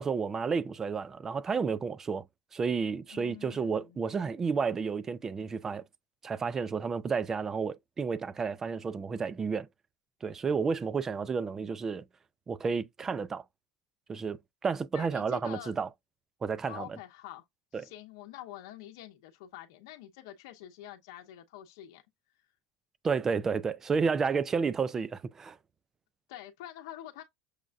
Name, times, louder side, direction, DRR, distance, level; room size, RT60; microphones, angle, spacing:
voice 1, 0.0-2.3 2.5-5.8 6.2-9.7 10.2-12.1 12.5-13.4 14.1-15.9 16.4-17.0 17.7-17.8 23.0-25.6, right 5 dB, 20° right, 0.4 m, -31 dB
voice 2, 3.1-4.0 14.9-15.7 16.7-17.4 17.7-22.0 26.3-27.2, left 12 dB, 85° left, 0.7 m, -46 dB
6.4 x 2.4 x 2.3 m
supercardioid pair, 140°, 2 cm